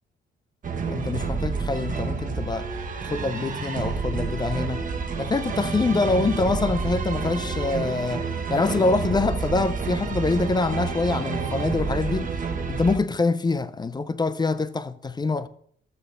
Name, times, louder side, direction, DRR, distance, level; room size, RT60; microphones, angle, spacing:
sound 1, 0.6-13.0, right 5 dB, 40° right, 1.1 m, -29 dB
voice 1, 0.9-2.7 3.0-4.8 5.2-12.3 12.7-15.5, left 3 dB, 20° left, 0.5 m, -25 dB
13.0 x 7.7 x 2.5 m
cardioid pair, 90°, 20 cm